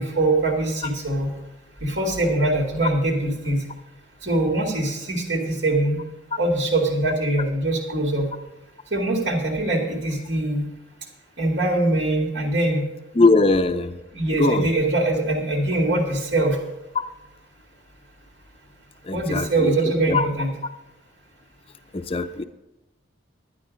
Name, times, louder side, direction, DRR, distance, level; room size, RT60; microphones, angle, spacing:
voice 1, 0.0-1.3 1.8-3.6 4.2-6.0 6.4-8.3 8.9-10.7 11.4-12.9 14.1-16.6 19.1-20.5, right 2 dB, 65° right, 0 dB, 2.1 m, -23 dB
voice 2, 13.2-14.0 14.4-14.7 19.0-19.7 20.1-20.2 21.9-22.4, left 3 dB, 30° left, 10 dB, 0.5 m, -20 dB
11.5 x 9.9 x 5.2 m, 0.99 s
head